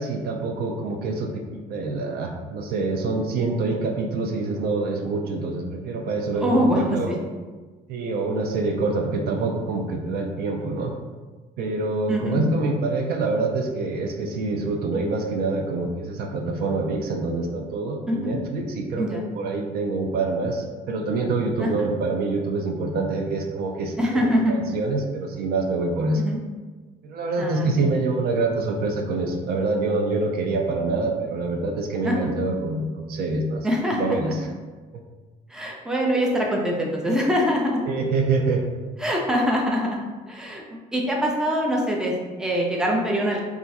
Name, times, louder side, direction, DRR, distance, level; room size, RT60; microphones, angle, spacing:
voice 1, 0.0-7.1 7.9-10.9 11.6-26.2 27.0-33.7 34.0-34.5 37.9-38.6, right 3 dB, 65° right, 3 dB, 0.4 m, -26 dB
voice 2, 6.3-7.1 12.1-12.4 18.1-18.3 19.0-19.2 21.6-21.9 24.0-24.5 26.2-26.4 27.4-27.8 32.0-32.3 33.6-34.2 35.5-37.8 39.0-40.0 40.3-40.6 40.9-42.1 42.4-43.4, equal, 5° right, -2 dB, 0.5 m, -23 dB
2.4 x 2.2 x 4.0 m, 1.3 s
cardioid pair, 110°, 17 cm